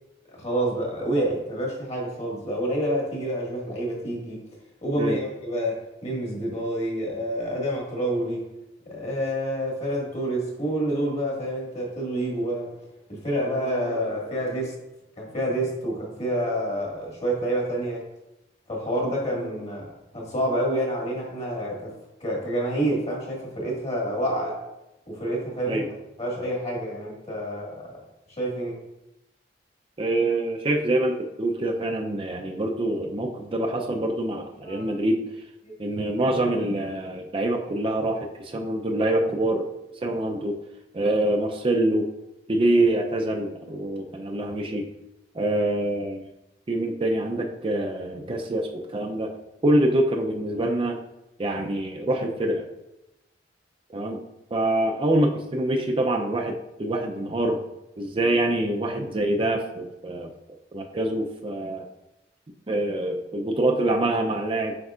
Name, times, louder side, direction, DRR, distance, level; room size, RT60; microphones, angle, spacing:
voice 1, 0.3-4.4 4.8-8.4 8.8-12.7 13.1-14.8 15.2-18.1 18.7-21.9 22.2-24.6 25.1-25.8 26.2-28.0 28.3-28.8 34.6-35.0 35.6-35.7, right 1 dB, 40° left, -2 dB, 1.8 m, -28 dB
voice 2, 30.0-35.2 35.8-39.7 40.0-40.5 40.9-42.1 42.5-44.9 45.3-46.3 46.7-49.3 49.6-50.9 51.4-52.7 53.9-54.2 54.5-57.6 58.0-60.3 60.7-61.9 62.7-64.7, right 1 dB, 30° right, 2 dB, 0.5 m, -25 dB
7.9 x 5.2 x 2.4 m, 0.91 s
head